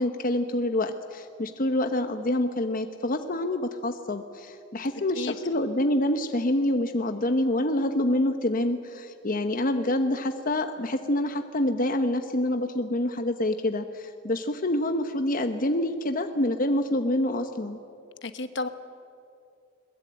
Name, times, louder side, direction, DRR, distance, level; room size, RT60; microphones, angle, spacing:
voice 1, 0.0-17.8, left 1 dB, 45° left, 7 dB, 1.0 m, -27 dB
voice 2, 18.2-18.7, left 2 dB, 65° left, 10 dB, 1.2 m, -31 dB
21.5 x 21.0 x 8.8 m, 2.4 s
head